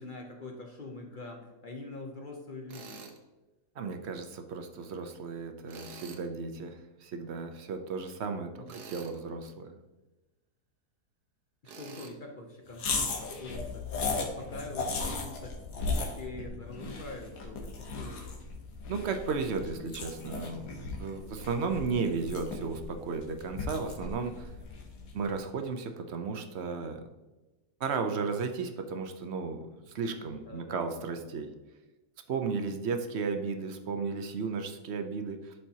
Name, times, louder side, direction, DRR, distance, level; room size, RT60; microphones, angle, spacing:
voice 1, 0.0-3.0 8.6-8.8 11.6-13.8 14.1-18.3 21.8-21.9 30.4-30.8 32.9-33.0, left 2 dB, 50° left, 1 dB, 0.6 m, -44 dB
Tools, 2.7-3.2 5.7-6.3 8.7-9.2 11.6-12.1, right 5 dB, 80° right, 1.4 m, -47 dB
voice 2, 3.8-9.8 18.9-24.5 25.1-27.0 27.8-31.5 32.3-35.5, right 4 dB, 60° right, 7 dB, 0.7 m, -34 dB
sound 1, 12.7-25.2, left 3 dB, 85° left, 1.6 m, -37 dB
11.0 x 4.4 x 2.8 m, 1.1 s
omnidirectional pair, 1.7 m